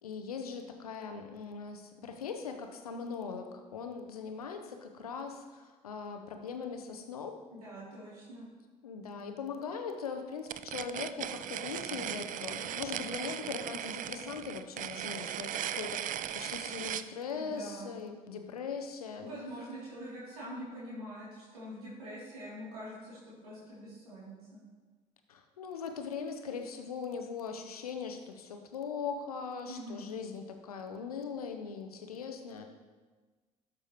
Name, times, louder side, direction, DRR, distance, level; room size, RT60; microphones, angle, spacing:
voice 1, 0.0-7.4 8.8-16.0 16.3-19.3 25.3-32.7, left 5 dB, 90° left, 5 dB, 0.7 m, -40 dB
voice 2, 7.5-8.5 17.3-17.9 19.2-24.6 29.7-30.1, equal, 85° right, -9 dB, 2.9 m, -44 dB
sound 1, 10.5-17.1, right 11 dB, 45° right, 0.4 m, -38 dB
12.5 x 6.2 x 3.0 m, 1.4 s
hypercardioid pair, 50°, 18 cm